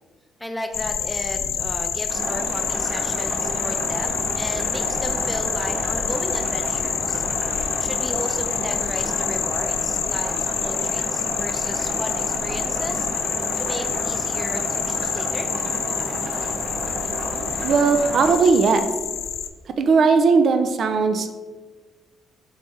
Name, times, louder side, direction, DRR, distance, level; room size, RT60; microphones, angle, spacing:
voice 1, 0.4-7.2 7.5-13.1 13.3-15.5, left 1 dB, 10° left, 5 dB, 0.5 m, -34 dB
sound 1, 0.7-19.5, left 8 dB, 70° left, 0.3 m, -27 dB
sound 2, 2.1-18.3, right 2 dB, 70° right, 0.8 m, -31 dB
voice 2, 17.6-18.9 19.8-21.3, right 4 dB, 55° right, 7 dB, 0.4 m, -18 dB
4.0 x 3.2 x 3.6 m, 1.3 s
cardioid pair, 90°, 0 cm